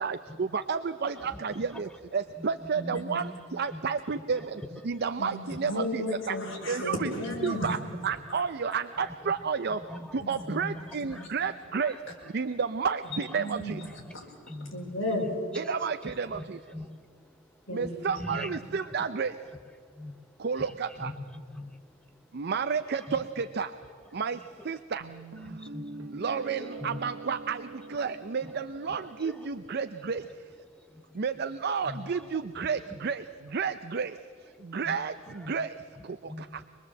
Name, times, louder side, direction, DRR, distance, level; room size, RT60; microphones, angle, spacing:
voice 1, 0.0-6.4 6.7-7.1 7.4-7.8 8.0-9.8 10.1-13.8 15.5-16.6 17.7-19.4 20.4-21.1 22.3-23.7 24.1-25.1 25.4-25.6 26.1-30.4 31.1-36.6, right 5 dB, 50° right, 10 dB, 0.5 m, -31 dB
voice 2, 1.2-1.8 2.4-3.0 3.7-3.8 4.4-4.7 5.5-5.6 8.9-9.3 9.7-11.3 11.8-12.0 13.7-15.0 16.0-17.4 17.8-17.9 18.2-18.9 19.9-20.2 21.0-22.2 23.1-23.2 25.4-26.2 26.6-27.0 28.4-28.5 29.0-29.5 30.7-31.2 31.7-32.3 32.8-33.0 34.8-35.0 35.4-35.5 36.2-36.6, left 1 dB, 5° left, 8 dB, 0.9 m, -43 dB
voice 3, 2.8-3.2 5.2-7.7 10.2-11.3 13.1-14.0 14.5-15.4 17.7-18.6, left 1 dB, 65° left, -1 dB, 5.2 m, -35 dB
Guitar, 25.0-30.1, right 3 dB, 80° right, 1.1 m, -44 dB
24.5 x 20.5 x 7.6 m, 2.2 s
head